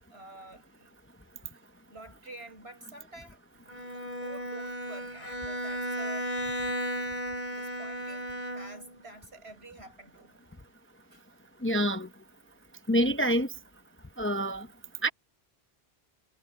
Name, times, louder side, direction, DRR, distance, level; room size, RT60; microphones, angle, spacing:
voice 1, 0.1-0.9 1.5-1.6 1.9-3.4 3.9-6.4 7.5-10.5 11.1-11.2, right 2 dB, 80° right, 7.8 m, -49 dB
Bowed string instrument, 3.7-9.0, equal, 45° left, 3.5 m, -35 dB
voice 2, 11.6-12.1 12.9-13.5 14.2-14.7 15.0-15.1, equal, 15° left, 0.5 m, -26 dB
omnidirectional pair, 1.1 m